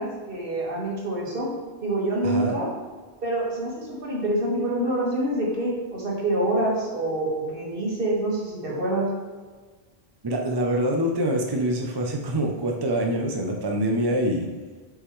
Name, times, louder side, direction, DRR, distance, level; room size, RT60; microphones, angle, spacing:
voice 1, 0.0-1.5 1.8-2.7 3.2-9.1, right 1 dB, 55° right, -4 dB, 1.9 m, -26 dB
voice 2, 2.2-2.6 10.2-14.5, right 1 dB, 30° right, 1 dB, 0.5 m, -25 dB
6.5 x 5.5 x 3.1 m, 1.4 s
omnidirectional pair, 1.1 m